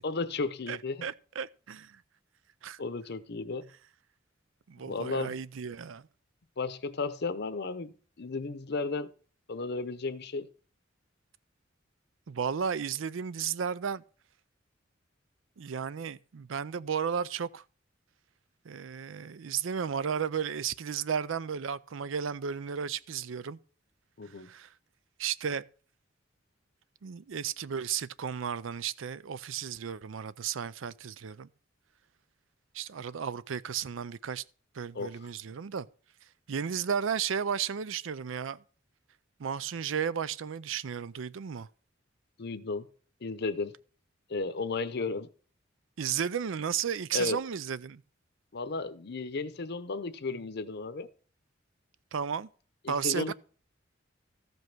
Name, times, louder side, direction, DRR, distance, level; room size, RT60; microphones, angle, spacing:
voice 1, 0.0-1.0 2.8-3.7 4.9-5.4 6.6-9.1 9.5-10.5 24.2-24.5 34.9-35.1 42.4-42.9 43.2-43.7 44.3-45.3 47.1-47.4 48.5-51.1 52.8-53.3, left 3 dB, 60° left, 0.8 m, -34 dB
voice 2, 0.7-2.0 2.6-2.8 4.7-6.1 12.3-14.0 15.6-17.6 18.6-23.6 24.3-24.7 25.2-25.6 27.0-31.5 32.7-34.4 34.7-35.9 36.5-38.6 39.4-41.7 46.0-48.0 52.1-52.5 52.9-53.3, right 7 dB, 85° right, 0.5 m, -34 dB
14.0 x 5.3 x 6.0 m
head